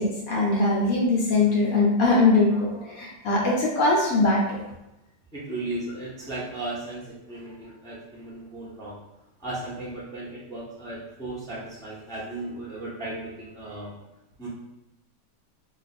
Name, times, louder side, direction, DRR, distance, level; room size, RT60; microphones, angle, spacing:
voice 1, 0.0-4.6, left 2 dB, 65° left, -3 dB, 1.0 m, -21 dB
voice 2, 5.3-9.0 9.4-13.9 14.4-14.5, right 2 dB, 5° left, -7 dB, 0.4 m, -36 dB
2.5 x 2.4 x 4.1 m, 0.93 s
omnidirectional pair, 1.7 m